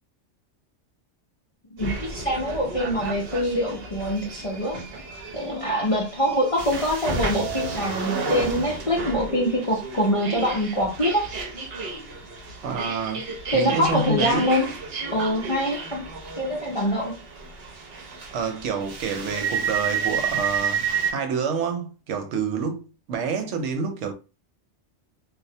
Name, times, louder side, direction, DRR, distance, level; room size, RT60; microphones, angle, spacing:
voice 1, 1.8-4.8 5.3-11.3 13.5-14.7 15.1-16.1 16.4-17.1, equal, 50° left, 0.4 m, -24 dB
sound 1, 1.8-21.1, right 5 dB, 60° right, 0.9 m, -32 dB
voice 2, 12.6-14.5 18.3-24.1, right 5 dB, 90° right, 0.9 m, -28 dB
2.3 x 2.0 x 2.6 m
omnidirectional pair, 1.2 m